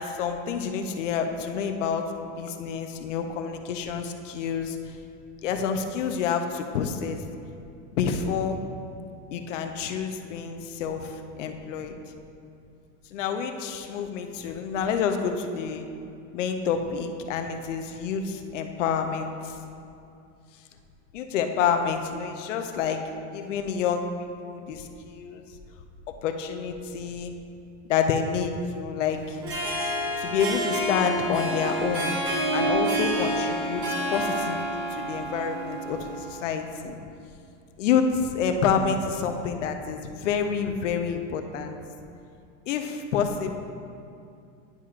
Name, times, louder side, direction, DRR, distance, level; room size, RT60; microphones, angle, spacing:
voice 1, 0.0-4.9 5.4-7.2 8.0-8.6 9.3-12.0 13.1-15.8 16.3-19.6 21.1-23.0 23.3-25.5 26.1-27.3 27.9-29.4 30.2-32.1 32.5-37.0 37.8-41.8 42.7-43.6, left 6 dB, 70° left, 6 dB, 0.7 m, -28 dB
Harp, 29.3-36.6, right 1 dB, 20° right, 0.4 m, -28 dB
10.5 x 5.7 x 2.5 m, 2.6 s
supercardioid pair, 180°, 39 cm